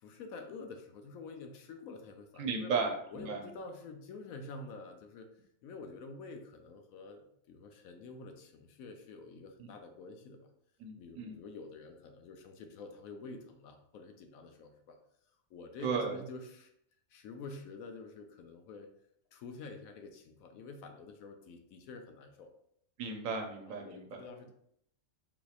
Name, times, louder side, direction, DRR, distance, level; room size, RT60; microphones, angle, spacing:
voice 1, 0.0-2.7 3.1-5.3 5.6-10.5 11.0-15.0 15.5-16.7 17.1-18.9 19.3-22.5 23.7-24.5, left 3 dB, 85° left, 5 dB, 1.0 m, -48 dB
voice 2, 2.4-3.5 9.6-9.7 10.8-11.4 15.8-16.2 23.0-24.1, right 5 dB, 75° right, 4 dB, 1.0 m, -35 dB
3.9 x 2.8 x 2.4 m, 0.73 s
omnidirectional pair, 1.4 m